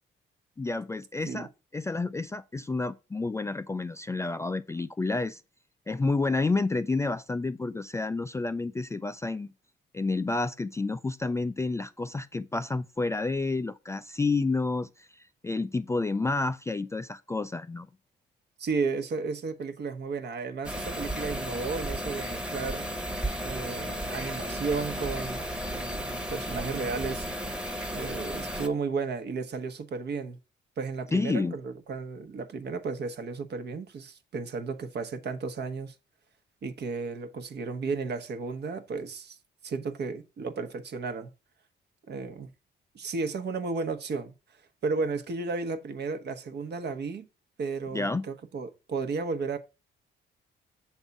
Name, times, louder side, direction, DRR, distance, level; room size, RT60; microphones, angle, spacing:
voice 1, 0.6-5.4 5.9-9.5 9.9-17.9 31.1-31.5 47.9-48.2, left 3 dB, 15° left, 0.3 m, -30 dB
voice 2, 18.6-22.9 23.4-25.4 25.8-27.3 27.9-30.4 30.8-35.9 36.6-39.4 39.6-41.3 42.1-42.5 42.9-44.3 44.8-47.3 47.6-49.6, right 4 dB, 60° right, 1.1 m, -33 dB
sound 1, 20.6-28.7, equal, 5° right, 1.1 m, -34 dB
7.1 x 3.6 x 5.3 m
cardioid pair, 90°, 20 cm